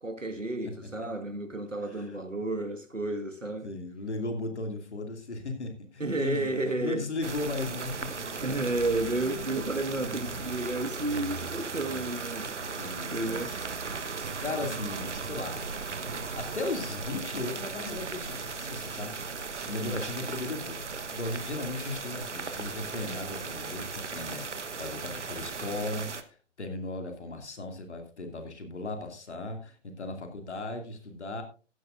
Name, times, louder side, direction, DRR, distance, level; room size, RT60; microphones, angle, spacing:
voice 1, 0.0-3.7 6.0-7.1 8.4-12.6 13.1-13.6 14.7-15.2 19.8-20.0, right 2 dB, 85° right, 1.7 m, -32 dB
voice 2, 3.6-8.4 9.9-10.2 12.7-13.6 14.4-15.6 16.3-19.2 19.6-24.5 24.8-31.4, left 2 dB, 65° left, 2.6 m, -36 dB
sound 1, 7.2-26.2, right 4 dB, 70° right, 1.2 m, -37 dB
14.5 x 11.0 x 2.5 m
figure-of-eight pair, 130°, 37 cm